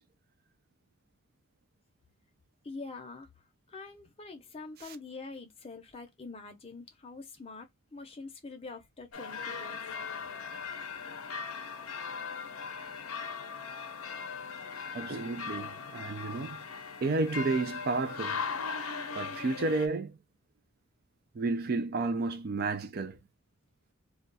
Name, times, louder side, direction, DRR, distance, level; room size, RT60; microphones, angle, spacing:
voice 1, 2.6-3.3 3.7-9.8, left 3 dB, 30° left, 0.7 m, -45 dB
sound 1, 9.1-19.9, left 5 dB, 85° left, 0.6 m, -39 dB
voice 2, 14.9-16.6 17.0-18.4 19.2-20.1 21.4-23.2, right 3 dB, 45° right, 0.4 m, -31 dB
2.3 x 2.2 x 3.9 m
head